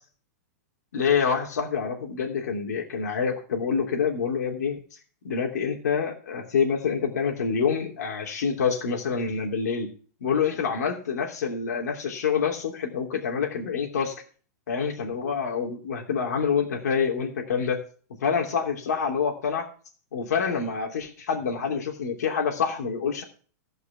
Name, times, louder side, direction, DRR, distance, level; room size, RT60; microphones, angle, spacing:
voice 1, 0.9-4.8 5.2-9.9 10.2-14.1 14.7-17.8 18.2-19.7 20.1-23.2, left 6 dB, 75° left, 1 dB, 3.0 m, -27 dB
15.5 x 5.6 x 5.9 m, 0.42 s
supercardioid pair, 165°, 9 cm